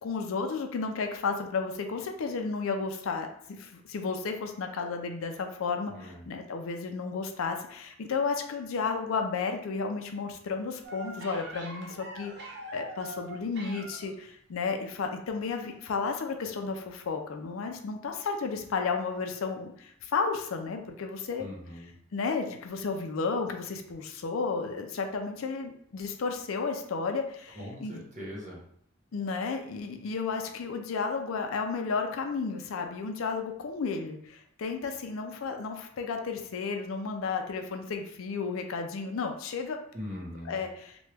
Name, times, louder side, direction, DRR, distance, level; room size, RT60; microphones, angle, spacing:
voice 1, 0.0-21.5 22.1-28.0 29.1-39.8 40.4-41.0, left 4 dB, 75° left, 5 dB, 0.4 m, -33 dB
voice 2, 5.9-6.3 21.4-21.9 27.6-28.6 39.9-40.6, left 1 dB, 35° right, -4 dB, 0.9 m, -41 dB
sound 1, 10.8-14.2 15.5-15.8 16.1-16.2, right 2 dB, 55° right, 0.6 m, -44 dB
3.0 x 2.2 x 3.3 m, 0.68 s
head